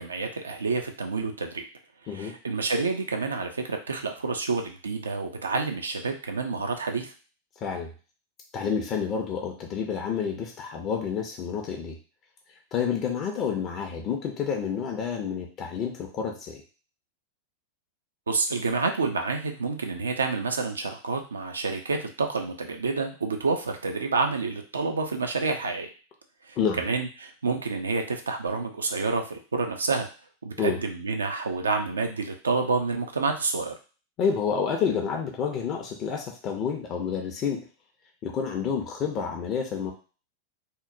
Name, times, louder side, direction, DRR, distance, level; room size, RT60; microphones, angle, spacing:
voice 1, 0.0-1.6 2.1-7.1 18.3-25.9 26.4-30.1 30.4-33.8, right 4 dB, 75° right, 4 dB, 0.3 m, -28 dB
voice 2, 7.6-7.9 8.5-12.0 12.7-16.6 26.6-26.8 30.6-30.8 34.2-37.7 38.2-39.9, left 6 dB, 35° left, 1 dB, 0.5 m, -29 dB
2.8 x 2.0 x 2.5 m, 0.36 s
figure-of-eight pair, 90°, 0 cm